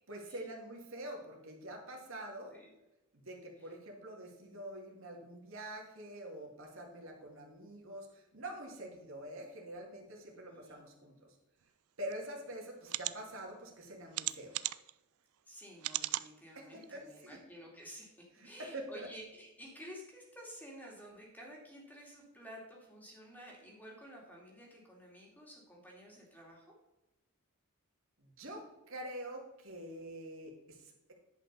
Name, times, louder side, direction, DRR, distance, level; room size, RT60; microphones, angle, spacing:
voice 1, 0.1-2.5 3.1-11.1 12.0-14.5 16.6-17.4 18.4-19.1 28.2-31.1, right 1 dB, 65° right, 0 dB, 2.4 m, -46 dB
voice 2, 10.4-10.8 15.5-26.8, equal, 10° left, -2 dB, 2.6 m, -52 dB
sound 1, 12.1-12.2 12.8-13.1 14.1-14.9 15.8-16.3 16.8-16.9 17.3-17.4, right 17 dB, 80° right, 0.4 m, -36 dB
10.5 x 5.6 x 5.3 m, 1.0 s
head